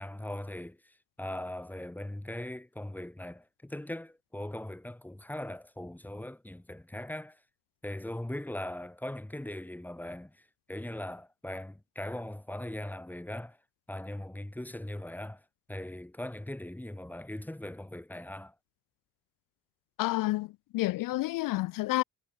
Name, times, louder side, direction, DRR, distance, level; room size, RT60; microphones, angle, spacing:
voice 1, 0.0-7.4 7.8-10.4 10.7-13.6 13.9-15.4 15.7-18.5, left 1 dB, 5° left, 2.6 m, -40 dB
voice 2, 20.0-22.0, left 18 dB, 65° left, 0.5 m, -30 dB
cardioid pair, 145°, 36 cm